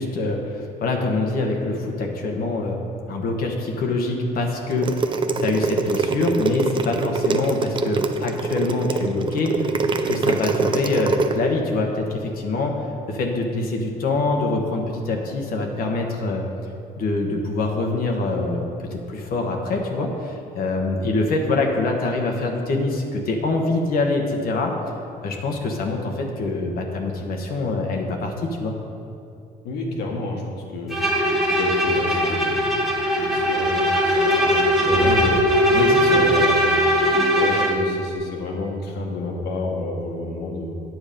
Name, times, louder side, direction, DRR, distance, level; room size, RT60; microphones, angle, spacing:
voice 1, 0.0-2.8 3.1-4.9 5.4-9.5 10.1-16.5 17.0-24.7 25.2-28.7 35.7-36.2, left 2 dB, 60° left, 1 dB, 1.2 m, -24 dB
sound 1, 4.7-11.3, right 4 dB, 30° right, 0.6 m, -23 dB
voice 2, 29.6-31.0 31.5-32.7 33.1-35.4 36.1-36.7 37.0-40.7, left 2 dB, 75° left, 0 dB, 1.8 m, -30 dB
Bowed string instrument, 30.9-37.9, equal, ahead, 1.4 m, -19 dB
9.1 x 7.0 x 5.2 m, 2.6 s
cardioid pair, 110°, 17 cm